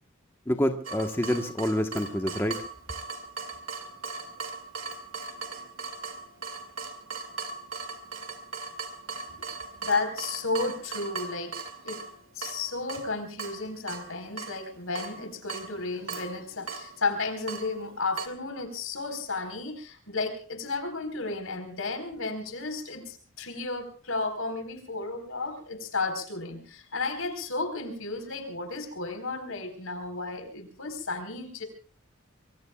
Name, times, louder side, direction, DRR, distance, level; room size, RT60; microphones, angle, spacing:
voice 1, 0.5-2.6, equal, 10° left, 5 dB, 1.2 m, -27 dB
Water tap faucet / Drip, 0.8-18.3, right 4 dB, 65° right, 2.4 m, -39 dB
voice 2, 9.8-12.0 12.3-31.6, left 3 dB, 80° left, 7 dB, 4.3 m, -33 dB
25.0 x 23.5 x 2.3 m, 0.38 s
head